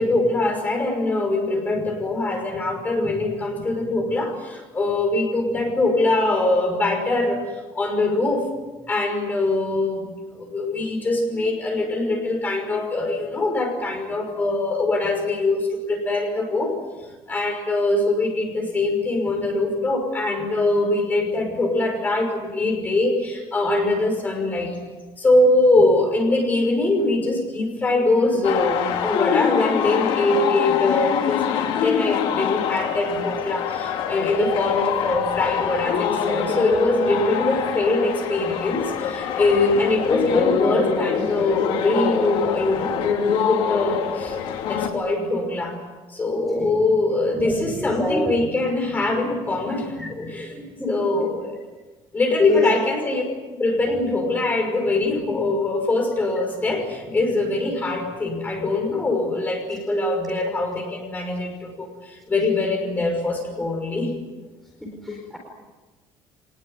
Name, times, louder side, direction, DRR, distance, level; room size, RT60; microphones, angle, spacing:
voice 1, 0.0-7.4 7.7-8.5 8.9-10.0 10.3-16.8 17.3-24.8 25.2-43.2 43.5-44.4 44.7-45.8 46.1-51.5 52.1-53.2 53.6-64.2, left 2 dB, 20° left, 3 dB, 5.7 m, -23 dB
sound 1, 28.4-44.9, left 8 dB, 65° left, 3.3 m, -25 dB
voice 2, 47.3-48.3 50.0-50.1 50.6-51.1 52.4-52.8 64.8-65.4, right 1 dB, 5° left, -1 dB, 4.3 m, -28 dB
24.5 x 20.5 x 9.7 m, 1.2 s
cardioid pair, 170°, 9 cm